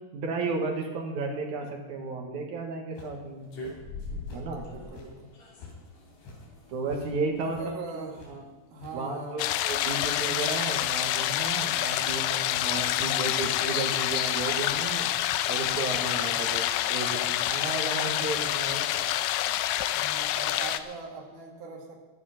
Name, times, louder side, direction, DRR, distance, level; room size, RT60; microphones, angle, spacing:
voice 1, 0.1-3.5 4.3-4.8 6.7-7.7 8.3-8.4 8.9-15.1 15.5-16.6 16.9-18.8, right 3 dB, 80° right, 1 dB, 1.7 m, -33 dB
sound 1, 3.0-3.2 3.6-3.8 4.3-4.4 4.9-5.1 5.6-5.7 6.1-6.4 6.9-7.0 7.5-7.7 8.1-8.3 8.8-9.0 9.3-9.6 10.1-10.3 10.6-11.2 11.4-11.6 12.1-12.2 12.7-12.9 13.3-13.6 14.0-14.2 14.5-14.8 15.3-15.4 15.9-16.0 16.5-16.7 17.1-17.2 17.7-17.8 18.3-18.4 18.9-19.1, left 5 dB, 60° left, 5.5 m, -50 dB
sound 2, 3.4-21.0, left 2 dB, 40° left, 3.2 m, -49 dB
voice 2, 4.1-5.3 7.4-9.4 12.9-13.3 16.2-16.6 19.9-22.0, right 3 dB, 50° right, 1 dB, 2.9 m, -41 dB
sound 3, 9.4-20.8, left 13 dB, 85° left, 3.2 m, -27 dB
23.0 x 7.8 x 5.8 m, 1.2 s
omnidirectional pair, 5.9 m